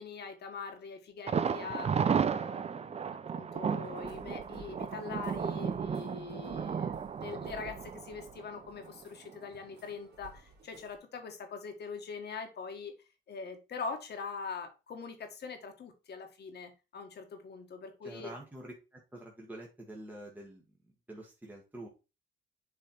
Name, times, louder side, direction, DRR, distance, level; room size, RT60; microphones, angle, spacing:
voice 1, 0.0-1.9 2.3-12.9 13.3-18.3, left 5 dB, 55° left, 6 dB, 1.5 m, -43 dB
Thunder, 1.3-9.0 9.3-9.4 9.8-9.9, right 7 dB, 30° right, 0.5 m, -34 dB
sound 1, 3.8-11.0, right 3 dB, 55° right, 2.6 m, -56 dB
voice 2, 18.0-21.9, right 1 dB, 10° right, -1 dB, 1.6 m, -47 dB
6.8 x 3.3 x 4.3 m, 0.29 s
cardioid pair, 90°, 20 cm